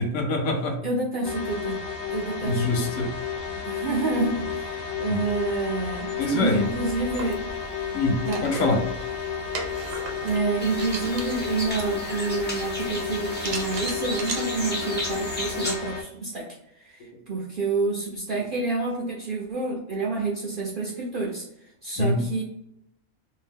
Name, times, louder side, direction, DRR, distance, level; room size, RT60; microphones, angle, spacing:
voice 1, 0.0-0.8 2.4-3.1 5.1-5.2 6.2-6.7 7.9-8.8 22.0-22.2, left 2 dB, 70° left, 3 dB, 0.9 m, -24 dB
voice 2, 0.8-1.8 2.1-3.0 3.6-7.4 8.2-8.8 10.2-16.5 16.7-21.4 21.8-22.4, right 3 dB, 60° right, -3 dB, 0.5 m, -28 dB
sound 1, 1.2-16.0, left 6 dB, 90° left, 1.0 m, -32 dB
sound 2, 6.5-14.4, right 3 dB, 80° right, 1.1 m, -38 dB
sound 3, 10.6-15.8, left 1 dB, 15° left, 0.3 m, -34 dB
2.7 x 2.0 x 3.4 m, 0.79 s
omnidirectional pair, 1.4 m